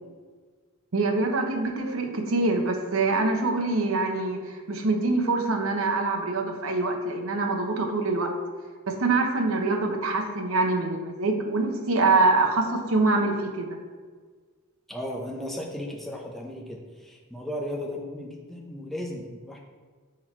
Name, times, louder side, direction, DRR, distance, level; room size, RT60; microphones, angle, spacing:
voice 1, 0.9-8.3 8.9-13.8, right 3 dB, 65° right, 3 dB, 0.7 m, -25 dB
voice 2, 14.9-19.6, left 1 dB, ahead, -1 dB, 0.7 m, -35 dB
6.1 x 4.4 x 4.4 m, 1.5 s
head